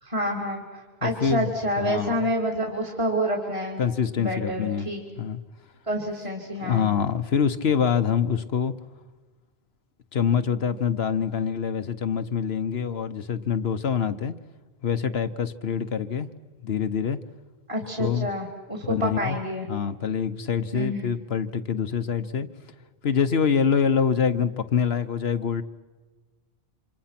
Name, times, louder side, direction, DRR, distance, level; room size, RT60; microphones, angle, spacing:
voice 1, 0.0-3.8 4.2-5.2 5.9-6.9 17.7-19.7 20.7-21.2, equal, 30° right, -2 dB, 3.0 m, -28 dB
voice 2, 1.0-1.5 1.8-2.2 3.8-4.9 5.2-5.4 6.6-8.7 10.1-14.3 14.8-16.3 16.6-17.2 18.0-18.3 18.8-19.4 19.7-22.5 23.0-25.6, left 7 dB, 75° left, 9 dB, 1.2 m, -25 dB
28.5 x 26.0 x 5.9 m, 1.3 s
omnidirectional pair, 1.1 m